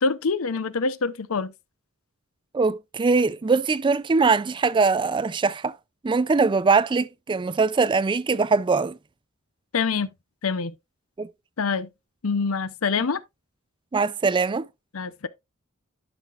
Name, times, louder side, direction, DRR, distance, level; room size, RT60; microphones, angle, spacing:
voice 1, 0.0-1.5 9.7-10.1 10.4-10.7 11.6-11.9 12.2-13.2 14.9-15.3, left 4 dB, 80° left, 0.7 m, -25 dB
voice 2, 2.5-5.7 6.0-9.0 11.2-11.3 13.9-14.7, right 4 dB, 25° right, 0.4 m, -22 dB
11.0 x 5.8 x 2.4 m
head